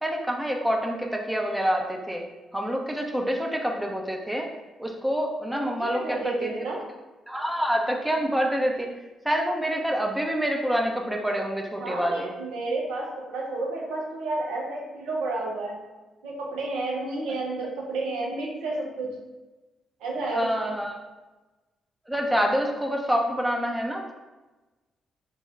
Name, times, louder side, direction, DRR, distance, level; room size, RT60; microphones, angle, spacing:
voice 1, 0.0-2.2 2.5-4.5 4.8-6.5 7.3-8.9 9.2-12.3 20.3-21.0 22.1-24.1, equal, 5° right, 1 dB, 0.6 m, -27 dB
voice 2, 5.8-6.8 11.8-15.8 16.2-19.2 20.0-20.8, right 2 dB, 70° right, -1 dB, 0.7 m, -31 dB
3.4 x 2.3 x 3.2 m, 1.1 s
hypercardioid pair, 40°, 0 cm